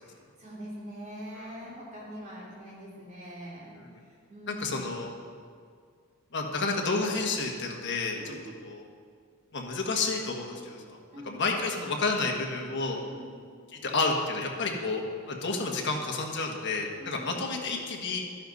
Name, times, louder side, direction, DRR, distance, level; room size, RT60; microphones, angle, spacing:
voice 1, 0.0-3.8 4.1-4.8 8.2-8.4 11.1-11.4 13.1-13.3 17.0-17.4, equal, 35° right, -6 dB, 3.1 m, -43 dB
voice 2, 4.5-5.1 6.3-8.3 8.6-8.9 9.5-11.0 11.2-13.0 13.7-18.2, left 3 dB, 50° left, 0 dB, 1.4 m, -30 dB
12.0 x 10.0 x 4.1 m, 2.1 s
head